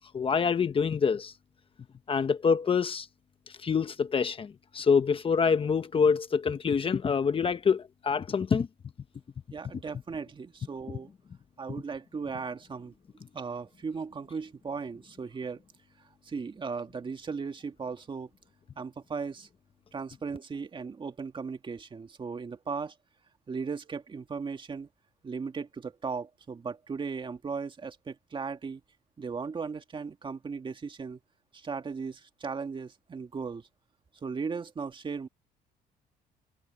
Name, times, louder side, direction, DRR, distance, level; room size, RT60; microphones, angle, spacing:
voice 1, 0.1-1.3 2.1-3.1 3.6-8.7, left 6 dB, 30° left, 1.1 m, -26 dB
voice 2, 9.5-11.1 11.6-12.9 13.3-15.6 16.2-18.3 18.8-19.5 19.9-22.9 23.5-24.9 25.2-28.8 29.2-31.2 31.5-33.7 34.2-35.3, right 5 dB, 30° right, 2.1 m, -37 dB
cardioid pair, 110°, 17 cm